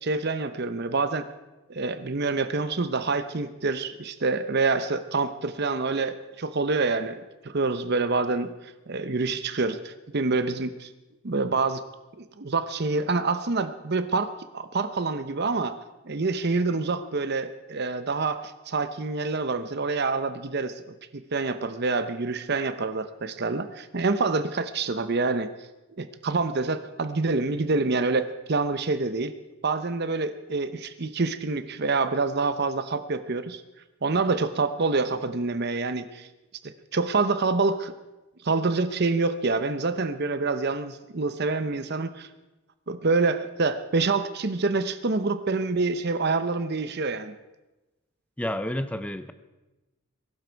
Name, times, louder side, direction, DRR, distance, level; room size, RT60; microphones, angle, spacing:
voice 1, 0.0-1.3 1.7-8.5 8.9-10.9 11.2-11.8 12.2-15.8 16.1-20.7 21.1-25.5 26.0-29.3 29.6-33.6 34.0-36.3 36.6-37.9 38.4-42.3 42.9-47.3, right 3 dB, 50° right, 11 dB, 0.7 m, -27 dB
voice 2, 48.4-49.3, left 1 dB, 5° left, 11 dB, 0.5 m, -30 dB
21.5 x 12.0 x 4.6 m, 1.1 s
head